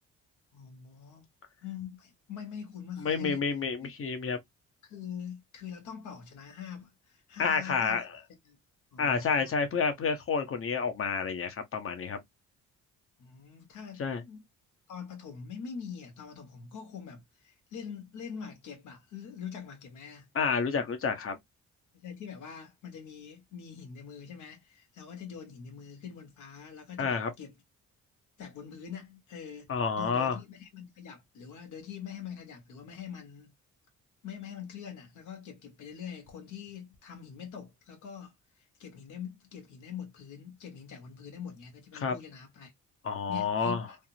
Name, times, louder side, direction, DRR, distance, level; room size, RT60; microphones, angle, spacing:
voice 1, 0.5-1.3 1.6-3.4 3.8-3.9 4.8-8.0 8.4-8.6 8.9-9.5 13.2-14.4 14.9-20.3 21.9-27.5 28.4-29.7 30.0-33.5 34.2-38.3 38.8-42.7 43.3-44.0, left 7 dB, 80° left, 1.3 m, -44 dB
voice 2, 3.0-4.4 7.4-8.1 9.0-12.2 14.0-14.2 20.3-21.4 27.0-27.3 29.7-30.4 42.0-42.1 43.0-43.8, left 5 dB, 45° left, 0.9 m, -29 dB
3.3 x 2.0 x 2.7 m
cardioid pair, 90°, 30 cm